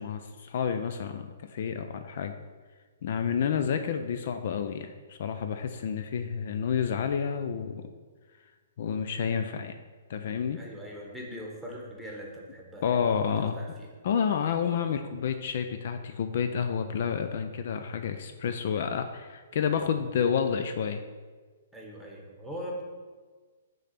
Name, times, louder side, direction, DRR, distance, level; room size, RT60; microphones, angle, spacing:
voice 1, 0.0-2.3 3.0-7.9 8.8-9.8 10.1-10.6 12.8-13.6 14.0-21.0, left 7 dB, 55° left, 7 dB, 0.4 m, -29 dB
voice 2, 10.5-13.3 13.6-13.9 21.7-22.8, equal, ahead, -2 dB, 1.3 m, -41 dB
5.2 x 3.8 x 5.9 m, 1.4 s
hypercardioid pair, 130°, 0 cm